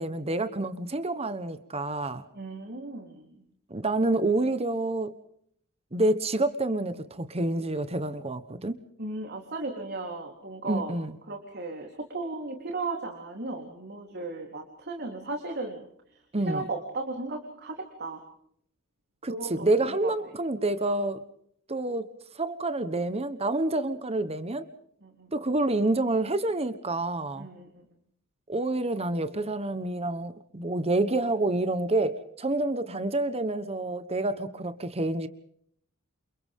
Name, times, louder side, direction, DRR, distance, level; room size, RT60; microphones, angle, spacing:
voice 1, 0.0-2.2 3.7-5.1 5.9-8.7 10.6-11.2 16.3-16.6 19.2-21.2 21.7-22.1 22.4-24.7 25.3-27.5 28.5-35.3, right 2 dB, 30° right, 11 dB, 1.2 m, -28 dB
voice 2, 2.3-3.4 9.0-10.9 11.3-15.8 16.1-16.2 16.5-18.2 19.3-20.1 25.0-25.3 27.4-27.8, right 3 dB, 50° right, 2 dB, 3.7 m, -36 dB
29.0 x 28.5 x 3.7 m, 0.68 s
head